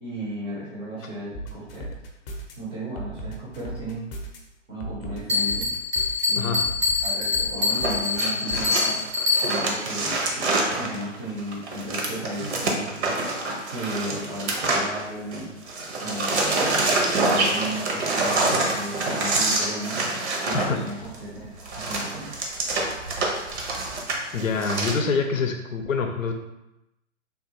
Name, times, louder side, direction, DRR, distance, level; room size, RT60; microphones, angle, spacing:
voice 1, 0.0-1.9 2.6-4.1 4.7-5.7 6.3-6.6 7.0-9.0 9.4-10.5 10.8-13.0 13.7-15.5 16.0-20.0 20.4-21.5 21.9-22.3, right 1 dB, 15° right, -7 dB, 0.5 m, -34 dB
sound 1, 1.3-2.5 3.0-4.4 4.8-6.2 6.6-8.1 8.5-8.7, right 1 dB, 45° left, 0.6 m, -36 dB
Bell, 5.3-9.8, left 4 dB, 85° right, 1.3 m, -25 dB
voice 2, 6.4-6.7 20.5-21.1 24.3-26.3, left 4 dB, 90° left, 5 dB, 0.6 m, -26 dB
sound 2, 7.7-15.4 15.7-24.9, right 2 dB, 60° right, 0.8 m, -26 dB
3.5 x 2.3 x 2.8 m, 0.91 s
hypercardioid pair, 130°, 39 cm